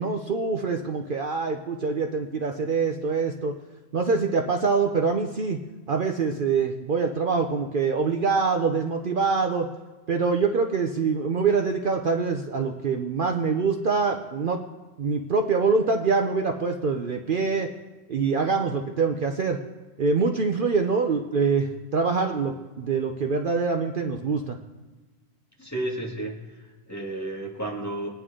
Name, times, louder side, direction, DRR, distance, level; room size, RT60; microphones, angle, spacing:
voice 1, 0.0-3.5 3.9-5.6 5.9-9.7 10.1-14.6 15.0-17.7 18.1-19.6 20.0-24.6, right 4 dB, 55° right, 4 dB, 0.8 m, -25 dB
voice 2, 25.6-28.1, right 1 dB, 15° left, -2 dB, 2.1 m, -32 dB
21.5 x 9.5 x 3.8 m, 1.2 s
omnidirectional pair, 1.2 m